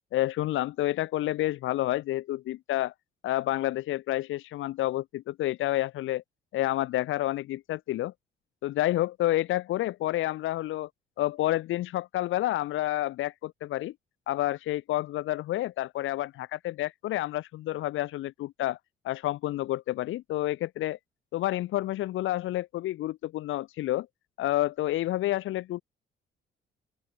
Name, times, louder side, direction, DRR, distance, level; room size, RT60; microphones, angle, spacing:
voice 1, 0.1-2.9 3.2-6.2 6.5-8.1 8.6-10.9 11.2-13.9 14.3-18.8 19.0-21.0 21.3-24.1 24.4-25.8, left 15 dB, 85° left, 1.2 m, -29 dB
open air
cardioid pair, 90°, 20 cm